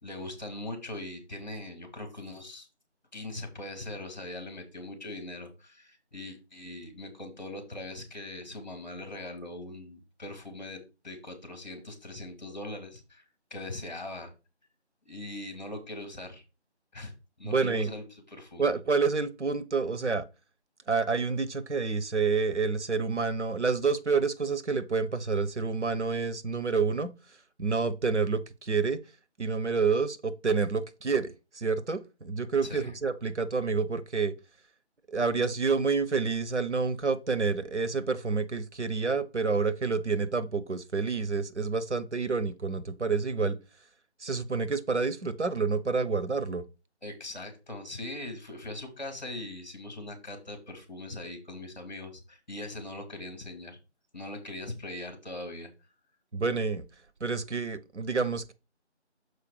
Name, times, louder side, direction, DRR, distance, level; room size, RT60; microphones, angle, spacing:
voice 1, 0.0-2.7 3.1-13.2 13.5-14.3 15.0-16.4 16.9-17.1 17.4-18.7 32.6-32.9 47.0-53.8 54.1-55.7, left 2 dB, 40° left, 2.4 m, -41 dB
voice 2, 17.4-17.9 18.6-20.3 20.9-27.1 27.6-29.0 29.4-34.3 35.1-43.6 44.2-46.6 56.3-56.8 57.2-58.5, right 4 dB, 75° right, 1.0 m, -28 dB
6.8 x 4.6 x 4.8 m
figure-of-eight pair, 170°, 35 cm